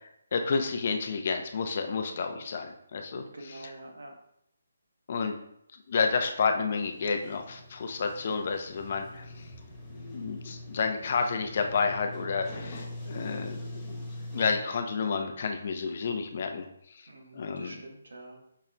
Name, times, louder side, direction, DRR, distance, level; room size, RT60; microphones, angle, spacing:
voice 1, 0.3-3.7 5.1-5.3 5.9-9.2 9.9-14.0 14.3-16.7 17.3-17.8, left 5 dB, 50° left, 5 dB, 0.4 m, -30 dB
voice 2, 3.2-4.1 17.1-18.4, right 1 dB, 80° right, 2 dB, 0.8 m, -46 dB
Sliding door, 6.7-14.6, left 1 dB, 20° left, 0.9 m, -43 dB
5.6 x 2.0 x 2.5 m, 0.74 s
figure-of-eight pair, 155°, 0 cm